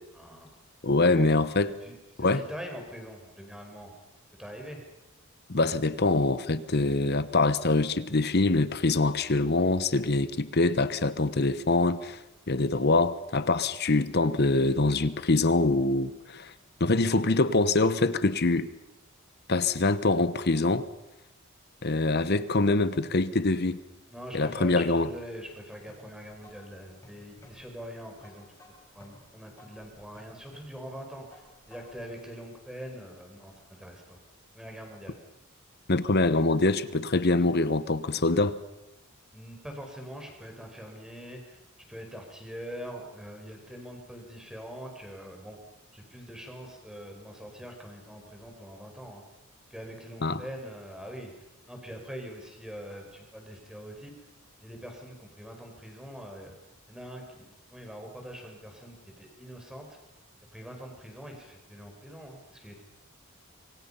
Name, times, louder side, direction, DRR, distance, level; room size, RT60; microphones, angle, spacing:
voice 1, 0.1-0.5 1.0-1.3 1.8-3.9 4.3-4.8 24.1-31.4 31.7-34.2 34.5-35.2 39.3-41.6 41.9-45.6 45.9-49.2 49.7-51.3 51.7-54.2 54.6-56.5 56.9-60.0 60.5-62.8, equal, 5° right, 2 dB, 4.7 m, -43 dB
voice 2, 0.8-1.8 2.2-2.5 5.5-16.5 16.8-18.7 19.5-20.9 21.8-23.8 24.3-25.1 35.9-38.6 50.2-50.4, left 2 dB, 50° left, 14 dB, 1.0 m, -24 dB
sound 1, 25.9-32.1, left 1 dB, 15° left, 6.7 m, -57 dB
26.5 x 24.0 x 5.6 m, 0.97 s
head